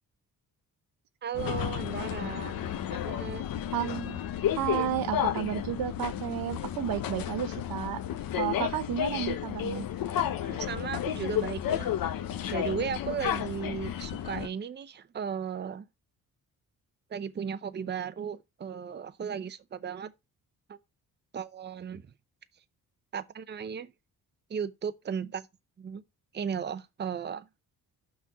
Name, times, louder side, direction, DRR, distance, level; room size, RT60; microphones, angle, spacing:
voice 1, 1.2-2.6 3.0-3.4 10.4-11.9 12.5-15.8 17.1-20.1 20.7-20.8 21.3-22.0 23.1-23.9 24.5-25.5 25.8-26.0 26.3-27.5, right 7 dB, 30° right, 0.6 m, -35 dB
sound 1, 1.3-14.5, left 10 dB, 70° left, 0.9 m, -32 dB
voice 2, 3.7-8.0 8.4-9.9, right 11 dB, 75° right, 0.7 m, -32 dB
6.0 x 4.3 x 6.0 m
cardioid pair, 90°, 35 cm